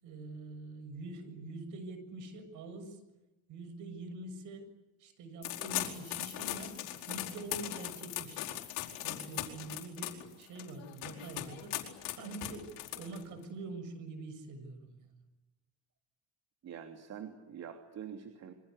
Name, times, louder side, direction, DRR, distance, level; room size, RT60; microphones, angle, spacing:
voice 1, 0.0-3.0 3.5-4.7 5.0-6.8 7.1-8.5 9.0-11.8 12.1-15.1, right 3 dB, 70° right, 10 dB, 7.4 m, -45 dB
sound 1, 5.4-13.4, left 14 dB, 85° left, 4.7 m, -39 dB
voice 2, 16.6-18.5, right 8 dB, 55° right, 5 dB, 3.1 m, -45 dB
27.0 x 24.5 x 8.4 m, 1.0 s
cardioid pair, 105°, 32 cm